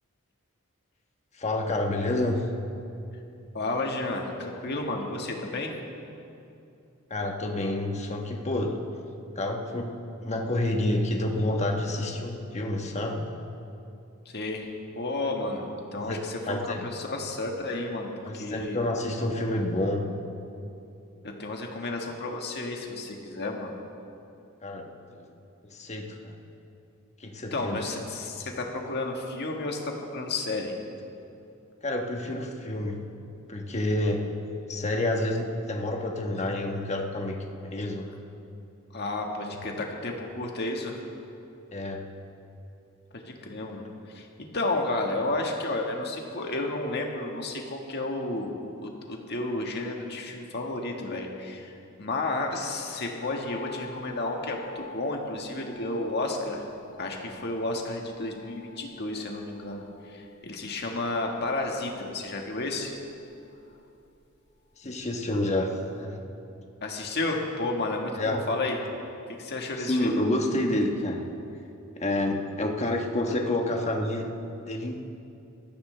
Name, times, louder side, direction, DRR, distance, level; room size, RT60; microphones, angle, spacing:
voice 1, 1.3-2.5 7.1-8.8 9.3-9.9 10.2-13.3 16.1-16.9 18.2-20.1 24.6-25.3 25.7-26.4 27.2-27.8 31.8-33.1 33.5-34.3 34.7-38.1 39.5-39.6 41.7-42.1 64.8-66.2 68.1-68.4 69.8-71.3 72.0-74.3 74.6-75.0, left 1 dB, 30° left, 2 dB, 1.3 m, -29 dB
voice 2, 3.5-5.7 14.2-14.7 14.9-18.1 18.3-18.8 21.4-23.7 27.5-30.8 38.9-41.0 43.1-48.5 48.8-56.7 57.0-62.9 66.8-68.8 69.4-70.2, left 2 dB, 50° left, 1 dB, 1.7 m, -32 dB
sound 1, 53.2-65.5 65.8-65.9, left 3 dB, 80° left, 3.1 m, -50 dB
20.0 x 14.0 x 3.4 m, 2.7 s
head